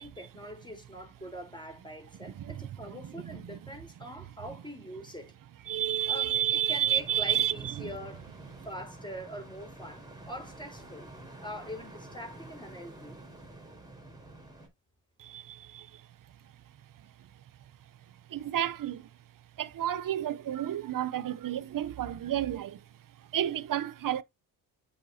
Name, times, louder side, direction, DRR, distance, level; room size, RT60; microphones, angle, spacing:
voice 1, 0.0-5.4 6.1-8.3 8.7-13.2, equal, 10° left, 3.7 m, -43 dB
voice 2, 3.0-3.6 5.7-7.9 15.2-16.0 18.3-19.1 19.6-22.8 23.3-24.2, right 11 dB, 45° right, 0.6 m, -31 dB
sound 1, 7.0-14.7, right 2 dB, 10° right, 4.2 m, -48 dB
8.1 x 5.7 x 2.7 m
supercardioid pair, 55°, 46 cm